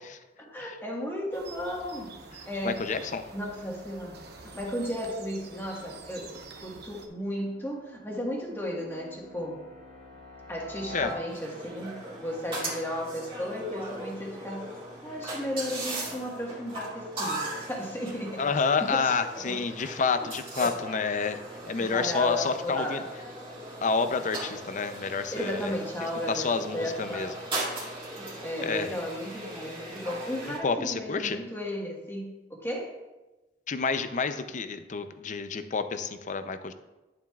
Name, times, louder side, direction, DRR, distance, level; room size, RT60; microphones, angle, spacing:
voice 1, 0.4-2.2 2.4-2.8 3.3-4.2 4.4-6.3 6.6-9.6 10.5-14.7 15.0-18.5 18.8-19.6 20.1-20.3 20.6-20.7 21.7-23.0 25.3-27.3 28.2-32.9, equal, 15° left, -2 dB, 1.4 m, -34 dB
sound 1, 1.3-7.1, right 3 dB, 60° right, 0.9 m, -47 dB
voice 2, 2.6-3.2 10.9-11.1 18.4-21.4 21.7-23.0 23.8-25.8 26.3-27.3 28.6-28.9 30.5-31.4 33.7-36.7, left 5 dB, 45° left, 10 dB, 0.5 m, -29 dB
sound 2, 5.6-11.9, right 1 dB, 75° left, 1.7 m, -47 dB
sound 3, 11.3-30.6, right 2 dB, 30° right, 2.1 m, -39 dB
10.5 x 7.4 x 2.4 m, 1.1 s
head